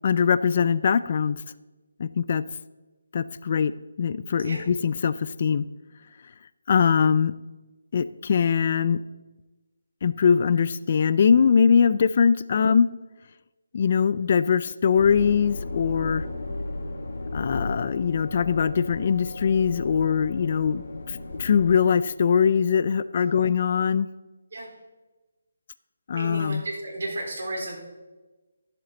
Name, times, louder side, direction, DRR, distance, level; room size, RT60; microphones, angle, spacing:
voice 1, 0.0-1.4 2.0-2.4 3.1-3.7 4.0-5.6 6.7-7.3 7.9-9.0 10.0-12.9 13.7-16.2 17.3-20.8 21.1-24.1 26.1-26.6, left 6 dB, 40° left, 15 dB, 0.3 m, -22 dB
sound 1, 15.0-21.8, left 2 dB, 60° left, 1.6 m, -35 dB
voice 2, 26.1-27.8, right 2 dB, 65° right, -1 dB, 4.0 m, -33 dB
13.5 x 7.8 x 3.9 m, 1.2 s
hypercardioid pair, 165°, 0 cm